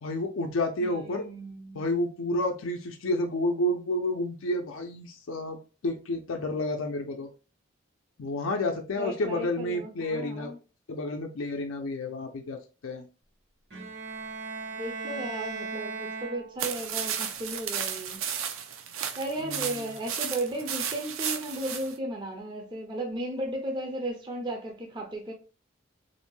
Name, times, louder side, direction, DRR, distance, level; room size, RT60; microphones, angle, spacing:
voice 1, 0.0-1.3 1.7-5.6 5.8-7.3 8.2-10.5 10.9-13.0 19.4-19.7, left 1 dB, 85° left, 0.4 m, -30 dB
voice 2, 0.8-1.9 9.0-10.6 14.7-18.3 19.2-25.3, right 1 dB, 25° right, 0.4 m, -35 dB
Bowed string instrument, 13.7-16.9, right 4 dB, 55° right, 0.8 m, -37 dB
sound 1, 16.6-21.9, right 8 dB, 85° right, 0.4 m, -33 dB
2.6 x 2.1 x 3.0 m
head